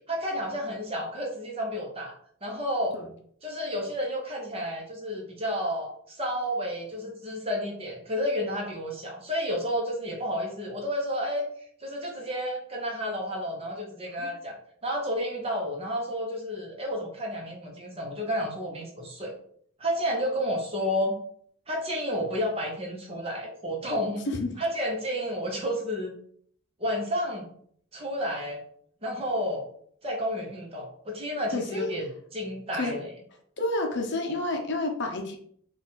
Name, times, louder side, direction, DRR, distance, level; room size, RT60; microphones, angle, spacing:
voice 1, 0.1-2.1 2.4-3.0 3.4-14.6 14.8-19.3 19.8-21.2 21.7-24.3 24.6-26.1 26.8-27.5 27.9-28.6 29.0-29.7 30.0-33.1, equal, 25° right, 0 dB, 0.8 m, -31 dB
voice 2, 31.5-31.9 32.7-33.0 33.6-35.4, left 2 dB, 55° left, 3 dB, 0.6 m, -29 dB
3.9 x 2.4 x 4.0 m, 0.62 s
head